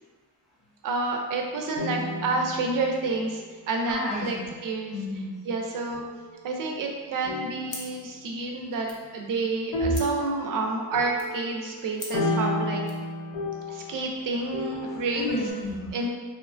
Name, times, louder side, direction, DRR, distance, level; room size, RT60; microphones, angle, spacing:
voice 1, 0.8-4.4 4.6-4.9 5.5-6.0 6.4-12.8 13.7-15.3 15.9-16.1, right 3 dB, 50° right, 1 dB, 0.4 m, -29 dB
sound 1, 1.8-3.5 4.4-4.8 5.9-6.7 7.2-8.5 9.7-15.5, left 1 dB, 85° left, 0.6 m, -33 dB
voice 2, 3.9-4.5 4.9-5.4 7.5-7.6 9.8-10.0 14.2-16.1, left 2 dB, ahead, -6 dB, 0.6 m, -33 dB
sound 2, 7.7-13.1, left 2 dB, 45° left, 0.6 m, -46 dB
2.9 x 2.1 x 2.4 m, 1.4 s
cardioid pair, 130°, 43 cm